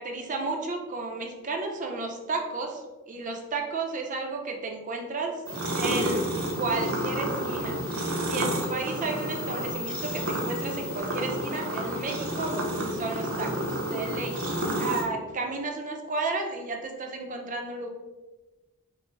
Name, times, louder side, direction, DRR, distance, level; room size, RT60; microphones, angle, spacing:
voice 1, 0.0-5.3 5.7-6.2 6.6-12.5 12.9-17.9, right 3 dB, 40° right, 3 dB, 0.5 m, -33 dB
sound 1, 5.5-15.0, equal, 80° right, 0.7 m, -30 dB
5.1 x 2.0 x 3.1 m, 1.1 s
head